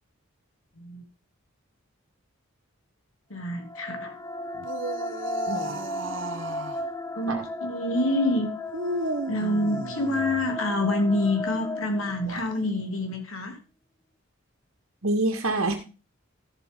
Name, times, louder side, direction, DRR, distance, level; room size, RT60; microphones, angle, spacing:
voice 1, 3.3-4.1 7.1-8.5 9.3-13.6, left 1 dB, 75° left, 5 dB, 2.8 m, -27 dB
sound 1, 3.5-12.7, left 2 dB, 15° left, 0.8 m, -35 dB
sound 2, 4.5-6.8 8.7-10.5 12.1-12.6, right 1 dB, 60° right, 1.1 m, -35 dB
voice 2, 5.5-5.8 7.3-7.4 15.0-15.7, right 2 dB, 80° right, 3 dB, 2.0 m, -26 dB
14.0 x 7.6 x 3.7 m, 0.32 s
head